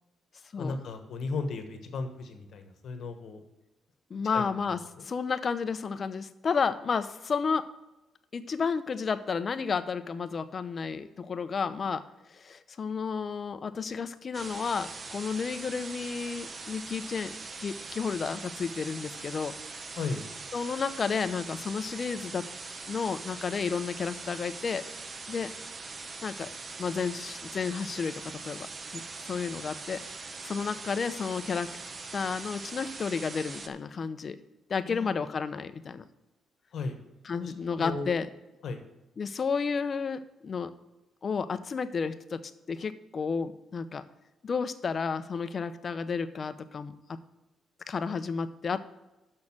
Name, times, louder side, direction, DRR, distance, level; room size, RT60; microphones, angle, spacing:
voice 1, 0.6-3.4 4.3-4.4 5.0-5.1 19.9-20.3 34.9-35.1 36.7-37.0 37.4-38.1 38.6-38.8, left 4 dB, 65° left, 7 dB, 1.2 m, -35 dB
voice 2, 4.1-7.7 8.3-12.0 12.3-19.5 20.5-22.5 22.9-24.8 25.3-25.5 26.2-26.5 26.8-28.7 28.9-30.0 30.4-31.7 32.1-34.4 34.7-36.0 37.2-38.3 39.2-40.7 41.2-44.0 44.4-47.2 47.9-48.8, left 5 dB, 45° left, 12 dB, 0.7 m, -32 dB
sound 1, 14.3-33.7, right 4 dB, 35° right, 0.9 m, -42 dB
6.4 x 6.3 x 7.3 m, 1.0 s
cardioid pair, 90°, 0 cm